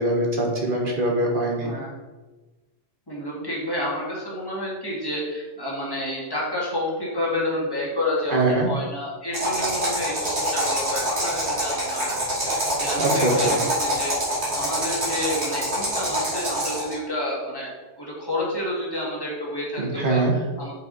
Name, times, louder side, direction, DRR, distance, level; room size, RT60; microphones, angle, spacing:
voice 1, 0.0-1.7 8.3-8.7 13.0-13.6 19.8-20.3, right 2 dB, 50° right, 0 dB, 1.6 m, -22 dB
voice 2, 1.6-2.0 3.1-14.1 14.5-20.7, left 1 dB, 20° left, -5 dB, 2.3 m, -30 dB
sound 1, 9.3-16.9, right 1 dB, 65° right, 2.8 m, -25 dB
7.8 x 5.6 x 4.1 m, 1.2 s
omnidirectional pair, 1.2 m